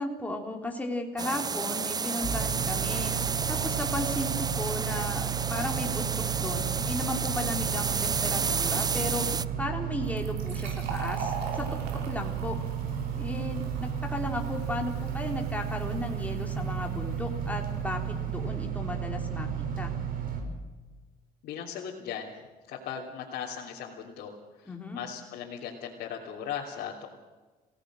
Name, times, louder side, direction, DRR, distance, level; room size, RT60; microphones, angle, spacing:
voice 1, 0.0-3.1 3.5-9.3 9.6-11.8 12.1-12.6 13.2-19.9 24.7-25.0, left 1 dB, 10° left, 1 dB, 3.5 m, -35 dB
sound 1, 1.2-9.5, right 5 dB, 25° right, 0.6 m, -31 dB
sound 2, 2.2-20.4, right 8 dB, 55° right, 6.1 m, -33 dB
Fill (with liquid), 10.0-17.4, right 5 dB, 90° right, 6.1 m, -42 dB
voice 2, 21.4-27.2, left 8 dB, 70° left, -4 dB, 3.2 m, -38 dB
28.5 x 17.5 x 6.4 m, 1.3 s
cardioid pair, 110°, 17 cm